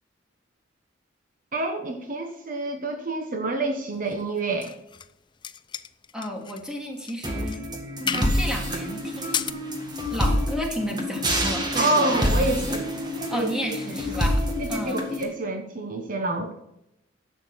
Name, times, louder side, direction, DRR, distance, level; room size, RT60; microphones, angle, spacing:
voice 1, 1.5-4.7 11.7-12.9 13.3-13.5 13.9-14.0 14.6-16.6, right 2 dB, 45° right, 5 dB, 1.1 m, -27 dB
sound 1, 4.1-5.1 5.4-6.6 7.0-7.2 7.5-7.6 8.1-8.4 9.2-9.5, left 8 dB, 25° left, 0.4 m, -32 dB
voice 2, 6.1-7.6 8.0-9.5 10.1-12.9 13.3-14.4 14.7-15.0, equal, 5° right, 1 dB, 2.2 m, -33 dB
sound 2, 7.2-15.2, equal, 20° right, 1.8 m, -27 dB
11.0 x 7.6 x 6.1 m, 0.82 s
head